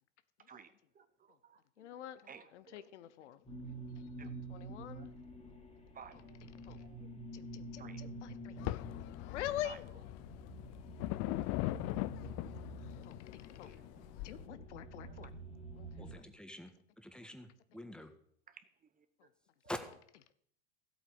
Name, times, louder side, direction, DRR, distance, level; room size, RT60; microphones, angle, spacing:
voice 1, 0.5-2.9 4.2-4.3 4.9-5.1 5.9-6.4 6.8-7.1 7.8-8.1 9.6-10.0 11.7-12.4 13.6-14.1 15.0-15.3 19.0-19.3, right 6 dB, 25° right, 10 dB, 1.0 m, -57 dB
voice 2, 1.8-2.2 2.5-3.4 4.5-5.1 6.6-6.8 7.3-8.6 9.2-9.8 13.0-13.8 14.2-15.3 15.8-15.9, left 12 dB, 75° left, 14 dB, 0.9 m, -44 dB
sound 1, 3.4-16.2, right 1 dB, 20° left, 2.6 m, -48 dB
sound 2, 8.6-14.5, left 19 dB, 45° left, 0.5 m, -41 dB
voice 3, 16.0-18.1 19.7-19.8, left 1 dB, 5° left, 7 dB, 1.6 m, -46 dB
14.0 x 8.3 x 5.1 m, 0.66 s
hypercardioid pair, 90°, 35 cm